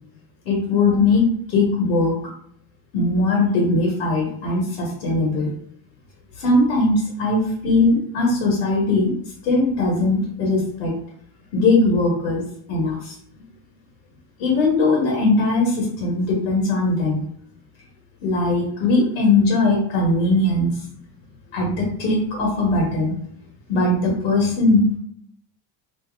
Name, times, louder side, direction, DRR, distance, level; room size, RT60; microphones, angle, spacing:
voice 1, 0.4-2.1 2.9-5.5 6.4-9.1 9.4-10.9 11.5-12.4 12.7-13.1 14.4-17.2 18.2-20.7 21.5-23.1 23.7-25.0, left 2 dB, 90° left, -3 dB, 1.3 m, -20 dB
2.9 x 2.7 x 3.4 m, 0.65 s
supercardioid pair, 100°, 45 cm